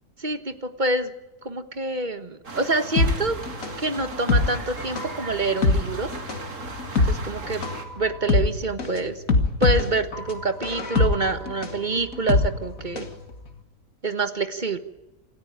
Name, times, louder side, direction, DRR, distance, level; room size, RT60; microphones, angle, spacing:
voice 1, 0.2-1.1 1.4-3.4 3.8-6.1 7.1-7.6 8.0-9.2 9.6-13.1 14.0-14.8, right 3 dB, 30° right, 10 dB, 1.4 m, -26 dB
sound 1, 2.4-7.8, right 3 dB, 55° right, 2.6 m, -37 dB
sound 2, 3.0-13.2 13.5-13.6, left 3 dB, 60° left, 2.5 m, -24 dB
27.5 x 14.0 x 8.9 m, 1.0 s
omnidirectional pair, 1.6 m